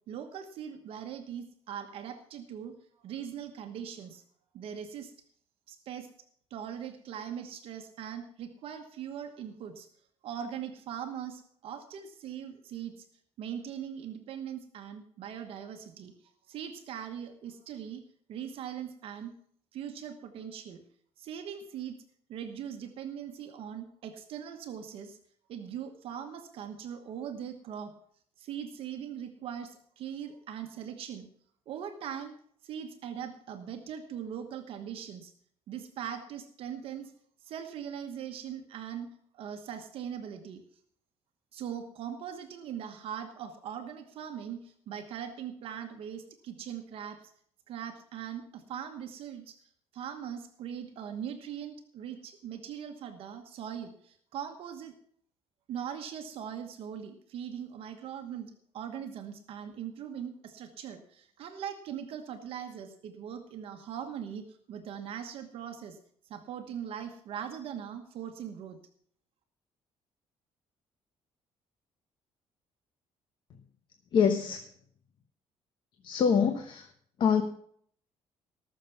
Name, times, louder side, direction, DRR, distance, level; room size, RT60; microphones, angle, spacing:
voice 1, 0.1-4.2 4.5-5.1 5.7-6.1 6.5-9.9 10.2-13.0 13.4-16.1 16.4-19.3 19.7-20.8 21.2-22.0 22.3-25.2 25.5-27.9 28.4-31.3 31.7-32.4 32.6-35.3 35.7-37.1 37.4-39.1 39.3-40.6 41.5-47.3 47.7-49.6 49.9-55.0 55.7-66.0 66.3-68.8, right 8 dB, 60° right, 6 dB, 1.2 m, -40 dB
voice 2, 74.1-74.6 76.0-76.9 77.2-77.4, left 7 dB, 45° left, 5 dB, 1.2 m, -25 dB
19.0 x 6.6 x 5.8 m, 0.62 s
cardioid pair, 165°, 11 cm